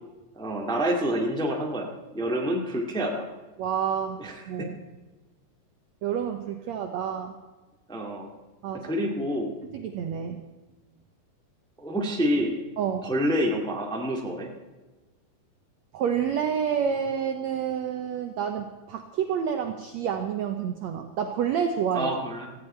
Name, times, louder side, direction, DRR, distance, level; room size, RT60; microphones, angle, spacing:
voice 1, 0.3-3.2 4.2-4.7 7.9-8.3 8.8-9.5 11.8-12.5 13.0-14.5 21.9-22.5, equal, 5° left, 0 dB, 0.8 m, -27 dB
voice 2, 3.6-4.2 4.5-4.7 6.0-7.3 8.6-8.9 9.7-10.4 12.8-13.1 15.9-22.1, right 8 dB, 90° right, 5 dB, 1.5 m, -29 dB
17.5 x 15.0 x 4.4 m, 1.2 s
omnidirectional pair, 4.4 m